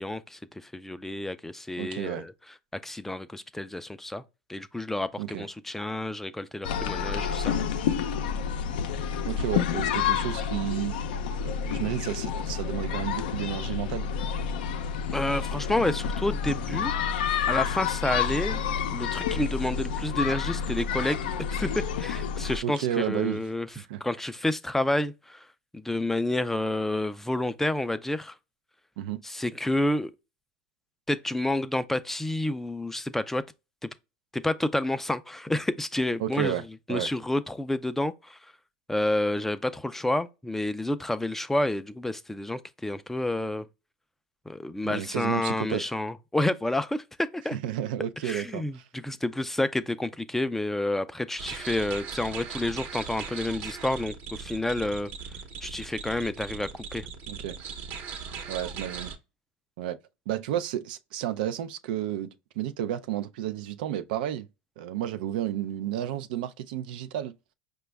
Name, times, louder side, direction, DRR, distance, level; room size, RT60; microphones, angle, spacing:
voice 1, 0.0-2.3 2.8-4.2 4.5-7.5 15.1-16.9 17.5-18.6 18.9-21.7 22.0-23.7 24.0-25.5 25.7-28.4 29.2-30.1 31.1-33.4 34.3-36.6 36.9-38.4 38.9-43.7 44.5-47.6 48.2-55.1 55.6-57.1, left 1 dB, 5° left, 0.3 m, -29 dB
voice 2, 1.8-2.3 5.2-5.5 9.2-11.0 11.4-14.2 22.6-23.4 23.8-24.0 29.0-29.2 36.2-37.1 44.8-45.9 47.5-48.8 57.3-57.6 58.5-59.1 59.8-60.0 60.3-64.5 64.8-67.3, right 11 dB, 80° right, 0.4 m, -32 dB
sound 1, 6.6-22.6, left 7 dB, 85° left, 0.5 m, -29 dB
sound 2, 51.4-59.2, right 6 dB, 55° right, 0.9 m, -39 dB
5.0 x 2.3 x 3.3 m
supercardioid pair, 115°, 5 cm